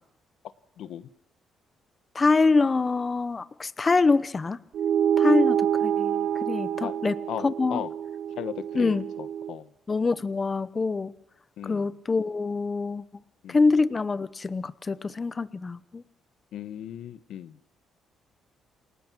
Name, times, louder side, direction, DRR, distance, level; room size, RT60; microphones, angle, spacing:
voice 1, 0.8-1.1 6.8-7.0 7.3-7.4 7.7-7.9 8.4-9.7 11.6-11.9 13.4-13.6 16.5-17.6, left 11 dB, 80° left, 13 dB, 1.1 m, -36 dB
voice 2, 2.1-4.6 5.2-7.1 7.4-7.8 8.8-9.0 9.9-11.1 11.6-13.0 13.5-16.0, left 4 dB, 30° left, 15 dB, 0.9 m, -25 dB
sound 1, 4.7-9.6, right 9 dB, 70° right, 0.8 m, -27 dB
28.5 x 18.5 x 6.2 m, 0.80 s
cardioid pair, 90°, 0 cm